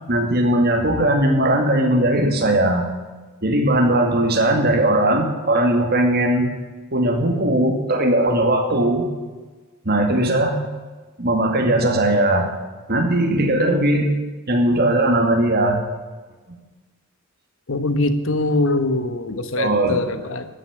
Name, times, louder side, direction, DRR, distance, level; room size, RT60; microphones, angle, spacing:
voice 1, 0.0-2.9 3.4-6.5 6.9-9.1 9.9-10.6 11.2-12.5 12.9-14.1 14.5-15.8 19.6-20.0, right 1 dB, 50° right, 2 dB, 2.3 m, -19 dB
voice 2, 17.7-20.5, left 2 dB, 65° left, 10 dB, 1.2 m, -22 dB
13.5 x 6.8 x 8.8 m, 1.3 s
head